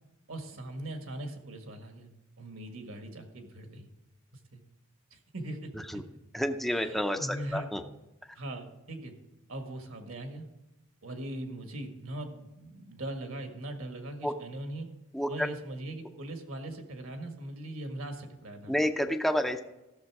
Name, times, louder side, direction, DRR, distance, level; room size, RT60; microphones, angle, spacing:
voice 1, 0.3-2.1 2.4-3.9 4.5-4.6 5.1-5.7 6.7-7.7 8.3-9.1 9.5-10.5 11.0-14.9 15.3-18.7, right 1 dB, 70° right, 5 dB, 1.7 m, -40 dB
voice 2, 6.3-7.8 14.2-14.3 15.1-15.5 18.7-19.6, equal, ahead, 5 dB, 0.5 m, -29 dB
14.5 x 6.7 x 4.7 m, 0.95 s
head